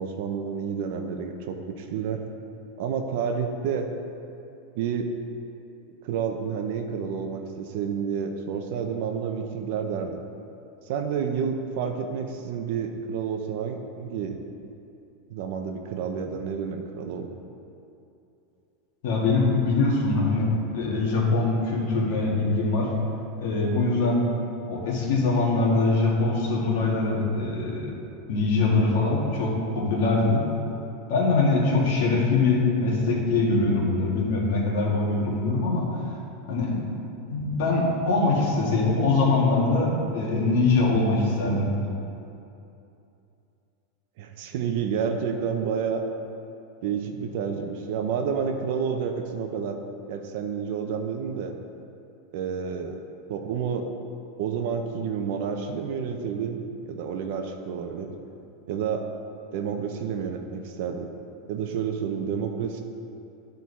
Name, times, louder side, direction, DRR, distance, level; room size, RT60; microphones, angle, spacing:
voice 1, 0.0-2.2 2.8-3.9 4.8-5.1 6.0-10.2 10.9-14.4 15.3-17.3 44.2-46.0 46.8-49.8 50.1-51.5 52.3-53.0 53.3-53.9 54.4-58.1 58.7-59.0 59.5-61.1 61.5-62.8, right 6 dB, 50° right, 5 dB, 0.6 m, -29 dB
voice 2, 19.0-22.9 23.4-24.2 24.7-27.9 28.3-30.4 31.1-35.9 36.5-36.8 37.3-41.7, left 3 dB, 55° left, -4 dB, 2.0 m, -23 dB
13.0 x 4.5 x 4.1 m, 2.7 s
supercardioid pair, 175°, 0 cm